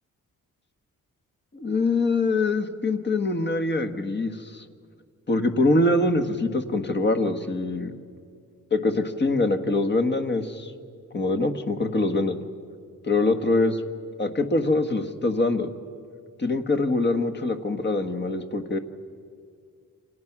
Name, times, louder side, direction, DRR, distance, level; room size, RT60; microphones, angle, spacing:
voice 1, 1.5-4.6 5.3-7.9 8.7-10.7 11.1-12.4 13.1-13.7 14.2-15.7 16.4-18.8, left 2 dB, 30° left, 7 dB, 1.5 m, -24 dB
28.5 x 26.5 x 6.0 m, 2.2 s
wide cardioid pair, 165°, 34 cm